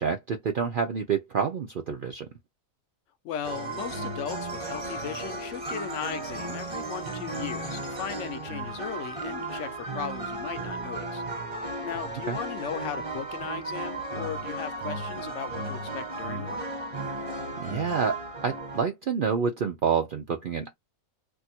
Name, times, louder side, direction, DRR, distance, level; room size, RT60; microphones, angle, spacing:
voice 1, 0.0-2.3 12.3-12.4 17.6-20.8, right 6 dB, 70° right, 0.5 m, -28 dB
voice 2, 3.2-11.2 11.8-16.7, left 9 dB, 65° left, 0.9 m, -37 dB
sound 1, 3.4-18.8, right 2 dB, 25° right, 1.1 m, -35 dB
2.7 x 2.5 x 4.1 m
omnidirectional pair, 1.5 m